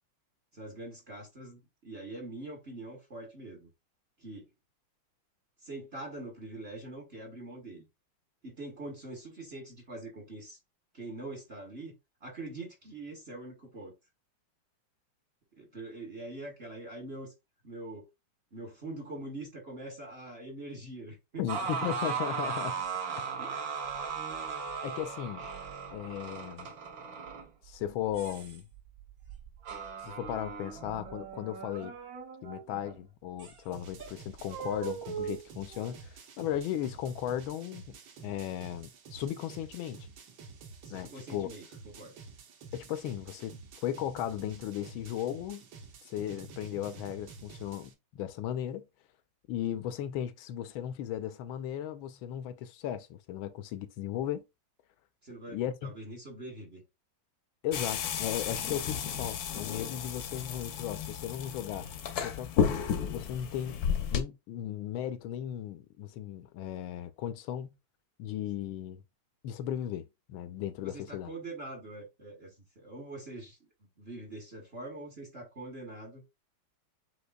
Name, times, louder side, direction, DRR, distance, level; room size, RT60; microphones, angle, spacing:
voice 1, 0.5-3.7 4.2-4.5 5.6-7.9 8.4-10.6 10.9-11.9 12.2-14.0 15.6-17.3 17.6-18.1 18.5-21.9 23.4-23.5 40.8-42.2 55.2-56.8 70.8-76.2, right 2 dB, 40° right, 1.1 m, -44 dB
voice 2, 21.4-22.9 23.2-23.3 24.8-25.5 25.9-26.7 27.6-28.7 30.0-31.9 32.4-38.0 38.2-40.1 40.9-41.5 42.7-45.6 46.1-48.9 49.5-54.4 55.5-55.9 57.6-61.9 62.2-62.8 63.1-63.8 64.1-67.8 68.2-69.0 69.4-71.3, left 11 dB, 80° left, 1.4 m, -36 dB
sound 1, 21.5-32.9 33.4-33.5 34.0-35.9, right 6 dB, 55° right, 1.2 m, -38 dB
sound 2, 33.7-47.9, right 4 dB, 75° right, 1.8 m, -50 dB
sound 3, 57.7-64.2, left 7 dB, 65° left, 1.0 m, -33 dB
7.9 x 2.9 x 2.3 m
omnidirectional pair, 2.2 m